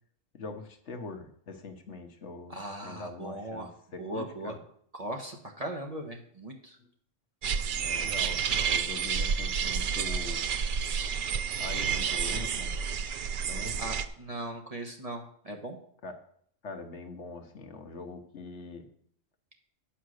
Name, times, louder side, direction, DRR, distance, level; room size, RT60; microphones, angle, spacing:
voice 1, 0.3-2.6 2.8-4.6 6.8-6.9 7.7-10.5 11.6-12.7 13.4-13.8 16.0-16.2 16.6-18.9, left 4 dB, 65° left, 6 dB, 1.3 m, -43 dB
voice 2, 2.5-3.7 4.0-4.6 5.0-6.8 13.8-15.8, right 1 dB, 30° right, 3 dB, 1.1 m, -38 dB
sound 1, 7.4-14.1, right 6 dB, 55° right, 0.6 m, -30 dB
9.3 x 5.8 x 6.4 m, 0.63 s
omnidirectional pair, 1.3 m